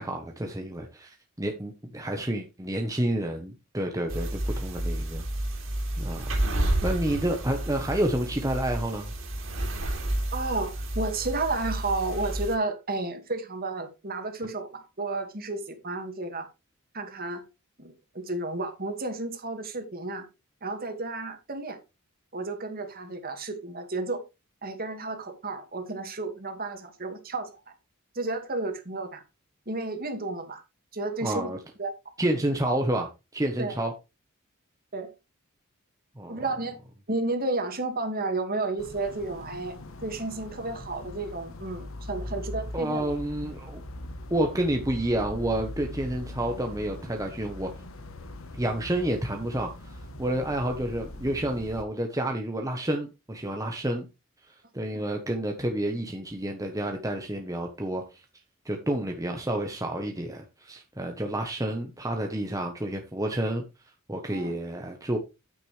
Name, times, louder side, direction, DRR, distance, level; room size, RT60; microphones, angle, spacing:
voice 1, 0.0-5.5 6.0-6.4 6.8-9.1 31.2-31.6 32.2-33.9 36.2-36.4 42.7-43.8 44.3-47.7 48.6-54.1 54.5-58.2 58.6-63.6 64.1-65.2, right 1 dB, 15° right, 1.1 m, -29 dB
sound 1, 4.1-12.6, right 1 dB, 65° right, 3.2 m, -30 dB
voice 2, 10.3-16.5 16.9-17.4 17.8-20.3 20.6-21.8 22.3-24.2 24.6-27.5 28.1-29.2 29.7-30.6 30.9-31.5 31.8-31.9 33.6-33.8 34.9-35.1 36.3-36.8 37.1-43.1 54.9-55.0 64.3-64.5, right 2 dB, 45° right, 2.1 m, -32 dB
sound 2, 38.8-51.8, left 1 dB, 65° left, 1.3 m, -41 dB
9.2 x 9.2 x 3.3 m
head